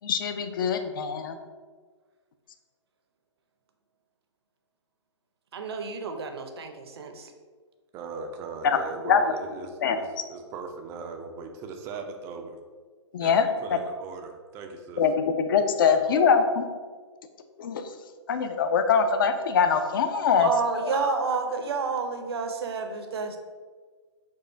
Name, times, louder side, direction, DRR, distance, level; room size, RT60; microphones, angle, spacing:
voice 1, 0.0-1.4 8.6-8.8 9.0-9.2 9.8-10.0 13.1-13.5 15.0-15.1 15.4-16.6 17.6-17.8 18.3-20.5, left 6 dB, 45° left, 8 dB, 0.4 m, -23 dB
voice 2, 5.5-7.3 20.4-23.4, right 4 dB, 55° right, 5 dB, 0.6 m, -30 dB
voice 3, 7.9-12.6 13.2-13.3 13.6-15.0 15.9-16.2, right 4 dB, 15° right, 4 dB, 0.3 m, -39 dB
4.5 x 2.4 x 4.4 m, 1.5 s
figure-of-eight pair, 125°, 16 cm